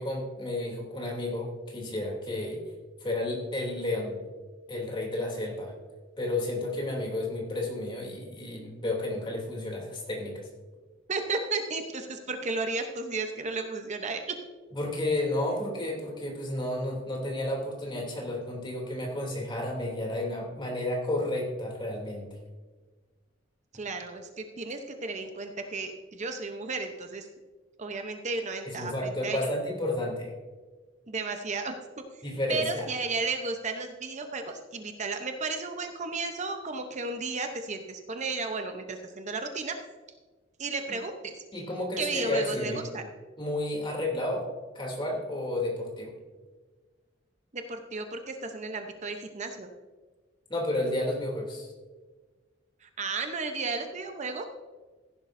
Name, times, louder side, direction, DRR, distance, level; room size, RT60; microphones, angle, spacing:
voice 1, 0.0-2.6 3.0-4.2 4.7-5.7 6.2-10.5 14.7-22.3 28.7-30.3 32.2-32.9 41.5-42.8 43.4-44.5 44.7-46.1 50.5-51.7, left 1 dB, 25° left, -1 dB, 2.9 m, -32 dB
voice 2, 11.1-14.2 23.7-27.3 27.8-29.5 31.1-31.7 32.5-39.8 40.6-41.3 42.0-43.1 47.5-49.7 52.8-54.5, right 3 dB, 40° right, 6 dB, 0.8 m, -33 dB
16.0 x 11.0 x 2.6 m, 1.3 s
head